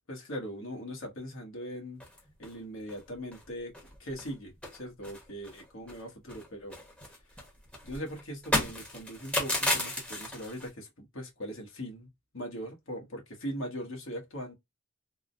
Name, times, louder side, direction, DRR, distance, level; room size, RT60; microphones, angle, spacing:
voice 1, 0.1-2.0 2.4-3.7 4.0-6.8 7.8-12.1 12.3-14.5, equal, 70° left, 1.3 m, -40 dB
sound 1, 2.0-2.5 2.9-3.0 3.3-3.5 3.7-4.3 4.6-6.0 6.3-10.7, left 1 dB, 5° left, 0.9 m, -34 dB
3.6 x 2.2 x 2.5 m
head